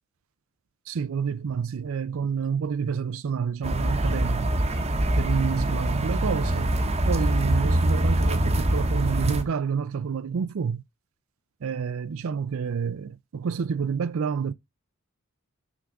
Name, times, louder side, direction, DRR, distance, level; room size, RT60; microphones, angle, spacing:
voice 1, 0.9-4.5 5.1-6.8 7.1-10.8 11.6-14.5, right 6 dB, 70° right, 0.4 m, -29 dB
sound 1, 3.6-9.4, right 1 dB, 30° right, 1.0 m, -24 dB
6.1 x 3.7 x 5.8 m
head